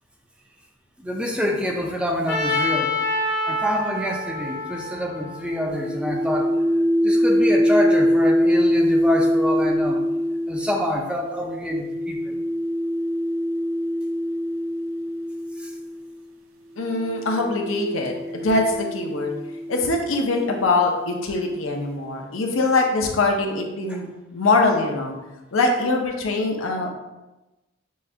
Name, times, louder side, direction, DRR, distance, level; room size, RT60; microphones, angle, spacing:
voice 1, 1.0-2.9 3.5-6.5 7.0-10.0 10.5-12.4 15.6-15.7 23.9-24.0, left 1 dB, 5° right, 0 dB, 0.4 m, -26 dB
Trumpet, 2.3-6.3, left 2 dB, 55° left, 0.9 m, -27 dB
sound 1, 5.7-16.1 17.0-20.7, equal, 80° right, 0.5 m, -23 dB
voice 2, 16.8-19.3 19.7-24.1 24.3-25.2 25.5-26.9, left 3 dB, 80° left, 2 dB, 0.6 m, -23 dB
6.3 x 2.3 x 2.7 m, 1.1 s
head